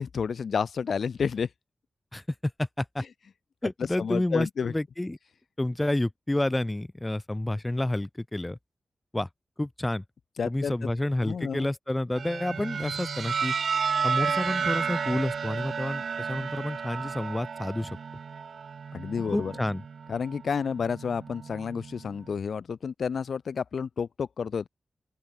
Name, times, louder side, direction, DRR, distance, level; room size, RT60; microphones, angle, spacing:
voice 1, 0.0-1.5 4.0-4.7 10.4-10.7 11.2-11.7 18.9-19.5 20.1-24.7, left 6 dB, 75° left, 2.1 m, -30 dB
voice 2, 2.1-3.0 3.6-5.2 5.6-8.6 9.1-9.3 9.6-10.0 10.4-13.5 14.0-18.0 19.3-19.8, left 1 dB, 15° left, 5.2 m, -29 dB
sound 1, 12.2-22.1, right 6 dB, 70° right, 2.2 m, -32 dB
open air
wide cardioid pair, 145°, 0 cm